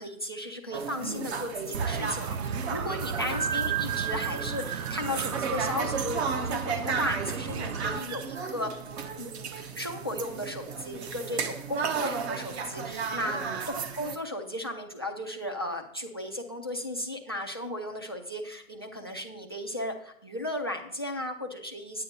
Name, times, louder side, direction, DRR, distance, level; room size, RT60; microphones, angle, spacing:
voice 1, 0.0-8.7 9.2-22.0, left 1 dB, 20° left, 6 dB, 0.3 m, -35 dB
sound 1, 0.7-14.2, right 5 dB, 50° right, 1.0 m, -34 dB
sound 2, 1.7-8.0, right 7 dB, 75° right, 0.8 m, -33 dB
9.7 x 8.6 x 4.1 m, 0.65 s
hypercardioid pair, 145°, 43 cm